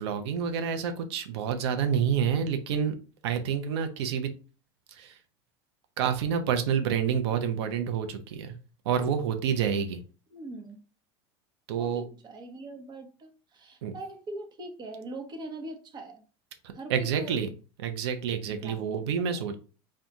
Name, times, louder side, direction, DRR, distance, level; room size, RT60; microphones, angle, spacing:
voice 1, 0.0-2.9 3.2-4.3 5.0-5.1 6.0-8.5 8.9-10.0 11.7-12.0 13.8-13.9 16.9-17.5 17.8-19.6, right 7 dB, 80° right, 8 dB, 0.8 m, -28 dB
voice 2, 10.3-10.8 11.8-16.2 16.7-17.4 18.5-19.5, right 2 dB, 30° right, 4 dB, 1.1 m, -42 dB
4.5 x 2.5 x 3.6 m, 0.36 s
supercardioid pair, 115°, 14 cm